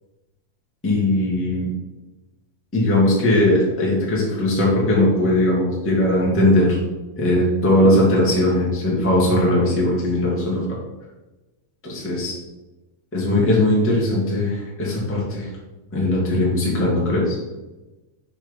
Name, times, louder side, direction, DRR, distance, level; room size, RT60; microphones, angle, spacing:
voice 1, 0.8-1.7 2.7-6.8 7.2-10.6 11.8-12.3 13.1-15.5 15.9-17.4, left 1 dB, 5° left, -5 dB, 0.9 m, -19 dB
6.0 x 4.5 x 5.2 m, 1.1 s
omnidirectional pair, 3.7 m